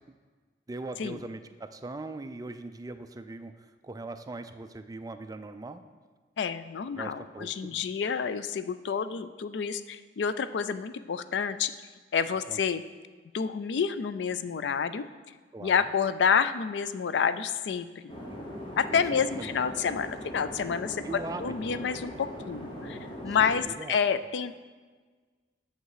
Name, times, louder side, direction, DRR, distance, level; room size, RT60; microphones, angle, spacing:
voice 1, 0.7-5.8 6.9-7.8 12.5-12.6 15.5-15.8 18.3-18.4 18.9-19.5 21.0-21.9 23.3-23.4 23.6-24.0, right 2 dB, 20° right, 9 dB, 0.4 m, -40 dB
voice 2, 6.4-11.7 12.1-12.8 13.3-15.0 15.6-18.1 18.8-24.5, left 6 dB, 70° left, 13 dB, 0.4 m, -29 dB
sound 1, 18.1-23.6, equal, 30° left, 1.2 m, -40 dB
7.9 x 6.6 x 4.8 m, 1.4 s
head